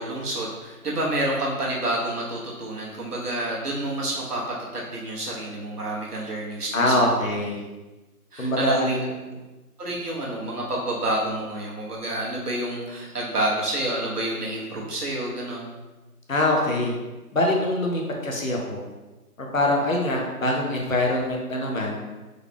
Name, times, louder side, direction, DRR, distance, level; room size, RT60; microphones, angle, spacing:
voice 1, 0.0-4.4 4.7-7.2 8.3-9.0 9.8-15.7, right 1 dB, 75° right, -4 dB, 1.3 m, -28 dB
voice 2, 6.7-7.6 8.4-9.1 16.3-17.0 17.3-18.8 19.4-22.0, left 1 dB, 60° left, 0 dB, 0.8 m, -24 dB
3.7 x 2.3 x 3.4 m, 1.1 s
figure-of-eight pair, 175°, 46 cm